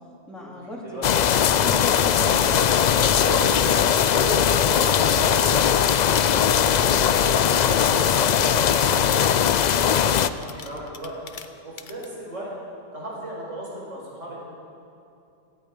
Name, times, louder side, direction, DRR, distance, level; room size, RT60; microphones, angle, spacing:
voice 1, 0.3-2.5, equal, ahead, -4 dB, 2.5 m, -37 dB
sound 1, 1.0-10.3, left 8 dB, 85° left, 0.3 m, -20 dB
voice 2, 1.9-3.8 4.1-11.1 11.6-12.5 12.9-14.4, right 1 dB, 75° right, -5 dB, 5.5 m, -34 dB
sound 2, 5.0-7.1 7.4-8.1 8.7-8.8 9.8-12.1, left 6 dB, 45° left, 0.8 m, -41 dB
17.5 x 15.0 x 5.3 m, 2.8 s
omnidirectional pair, 1.3 m